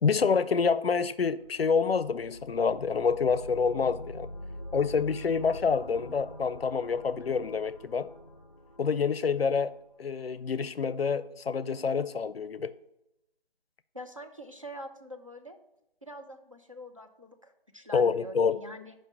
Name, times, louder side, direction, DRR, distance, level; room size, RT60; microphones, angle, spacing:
voice 1, 0.0-4.3 4.7-8.1 8.8-9.7 10.0-12.7 17.9-18.6, left 5 dB, 85° left, 0.5 m, -27 dB
sound 1, 1.4-10.1, equal, 35° left, 0.5 m, -45 dB
voice 2, 13.9-15.6 16.0-18.9, equal, 35° right, 0.5 m, -45 dB
5.5 x 5.2 x 6.3 m
figure-of-eight pair, 170°, 29 cm